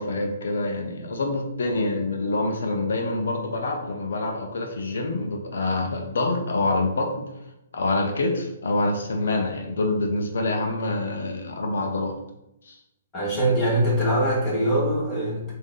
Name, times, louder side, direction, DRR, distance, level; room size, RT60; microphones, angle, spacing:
voice 1, 0.0-7.3 7.7-12.1 12.7-12.8, left 2 dB, 80° left, 3 dB, 0.6 m, -26 dB
voice 2, 13.1-15.5, right 1 dB, 15° left, -6 dB, 1.3 m, -23 dB
3.7 x 2.6 x 3.8 m, 0.85 s
hypercardioid pair, 170°, 0 cm